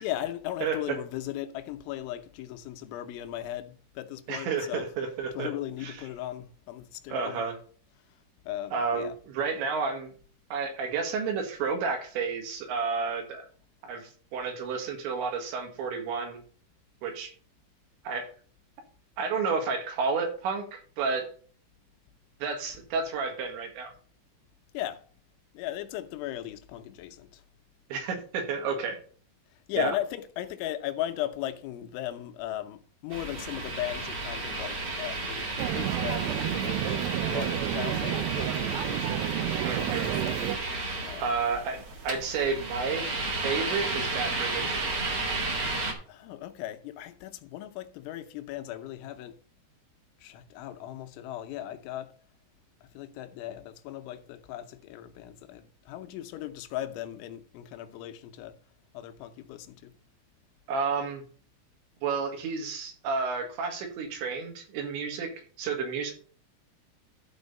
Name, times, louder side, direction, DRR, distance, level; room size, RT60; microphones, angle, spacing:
voice 1, 0.0-4.9 5.3-7.4 8.1-9.2 24.7-25.0 25.5-27.4 29.5-35.5 35.7-40.0 41.0-41.3 46.1-49.3 50.2-52.1 52.8-58.6 58.9-59.9, left 13 dB, 80° left, 3.1 m, -37 dB
voice 2, 4.3-5.5 5.8-5.9 7.1-7.6 8.7-10.1 10.5-13.5 13.8-16.4 17.0-17.3 18.1-18.3 19.2-21.3 22.4-23.9 27.9-29.0 29.8-29.9 39.6-40.1 41.2-43.1 43.4-44.9 60.7-61.2 62.0-65.3 65.6-66.1, right 5 dB, 70° right, 3.9 m, -31 dB
sound 1, 33.1-45.9, right 2 dB, 45° right, 1.8 m, -33 dB
sound 2, 35.6-40.6, right 14 dB, 90° right, 2.4 m, -30 dB
12.0 x 4.4 x 5.2 m
omnidirectional pair, 5.6 m